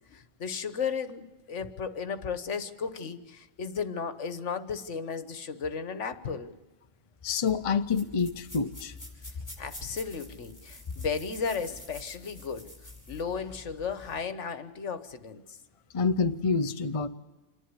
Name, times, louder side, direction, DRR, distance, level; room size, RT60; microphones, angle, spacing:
voice 1, 0.1-6.5 9.6-12.7 13.1-15.6, left 5 dB, 70° left, 11 dB, 1.5 m, -34 dB
voice 2, 7.2-8.9 15.9-17.1, left 5 dB, 35° left, 9 dB, 0.7 m, -27 dB
sound 1, 7.5-14.2, left 2 dB, 15° left, 5.6 m, -48 dB
27.0 x 11.0 x 9.8 m, 1.1 s
omnidirectional pair, 1.3 m